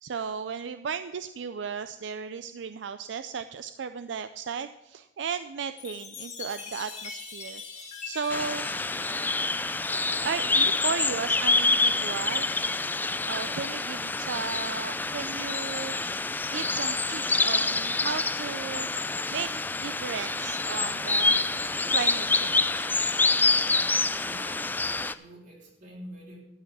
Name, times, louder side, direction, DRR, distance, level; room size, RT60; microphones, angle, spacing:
voice 1, 0.0-7.6 8.0-8.7 9.8-12.5 13.3-16.2 16.5-19.5 19.8-21.4 21.9-23.0, right 6 dB, 80° right, 11 dB, 0.4 m, -35 dB
Chime, 5.8-10.4, left 5 dB, 40° left, 1.7 m, -42 dB
sound 1, 8.3-25.1, left 3 dB, 10° left, 0.3 m, -27 dB
voice 2, 24.2-26.4, equal, 45° right, -1 dB, 3.3 m, -46 dB
13.0 x 5.8 x 7.5 m, 0.99 s
head